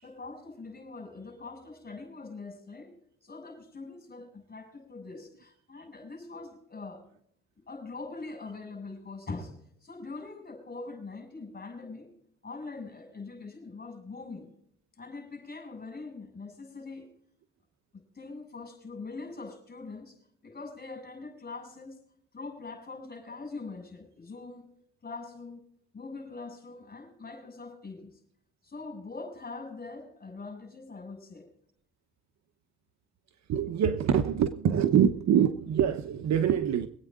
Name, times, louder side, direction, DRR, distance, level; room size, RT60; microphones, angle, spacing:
voice 1, 0.0-2.9 3.2-7.0 7.6-12.1 12.4-14.5 15.0-17.1 17.9-22.0 22.3-24.7 25.0-25.7 25.9-28.2 28.6-31.4, left 3 dB, 30° left, 5 dB, 7.0 m, -43 dB
voice 2, 33.5-36.9, right 8 dB, 65° right, 9 dB, 1.0 m, -25 dB
24.5 x 9.0 x 3.7 m, 0.66 s
cardioid pair, 90°, 30 cm